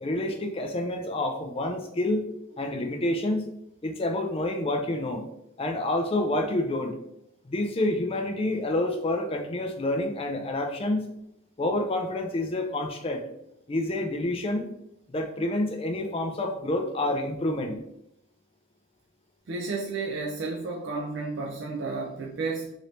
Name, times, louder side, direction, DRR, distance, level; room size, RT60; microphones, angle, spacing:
voice 1, 0.0-2.2 2.6-3.4 3.8-5.2 5.6-6.9 7.5-11.0 11.6-13.2 13.7-14.7 15.1-17.8, left 1 dB, 25° left, 4 dB, 0.3 m, -28 dB
voice 2, 19.5-22.7, right 3 dB, 55° right, 0 dB, 0.4 m, -32 dB
2.9 x 2.6 x 3.1 m, 0.79 s
head